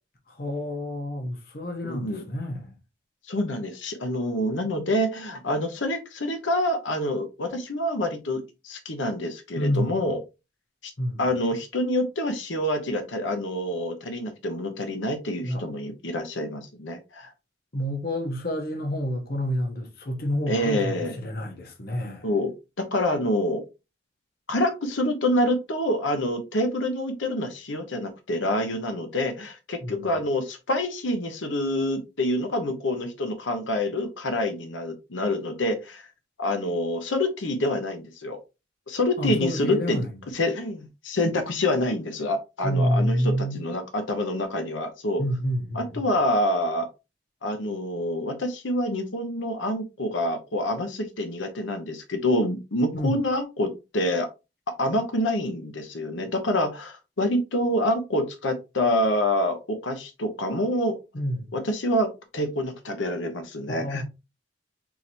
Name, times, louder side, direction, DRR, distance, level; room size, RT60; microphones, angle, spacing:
voice 1, 0.4-2.7 9.5-10.1 11.0-11.2 15.4-15.6 17.7-22.3 29.8-30.1 39.2-40.1 42.6-43.6 45.2-46.1 52.9-53.2 61.1-61.5 63.7-64.0, equal, 50° left, 0.9 m, -28 dB
voice 2, 1.8-2.2 3.3-10.2 11.2-17.3 20.5-21.1 22.2-22.5 22.8-23.6 24.5-36.1 36.4-38.4 38.9-40.0 40.3-45.2 45.7-46.9 47.4-54.3 54.8-61.0 61.5-64.0, left 1 dB, 85° left, 0.9 m, -27 dB
4.5 x 3.4 x 2.8 m
head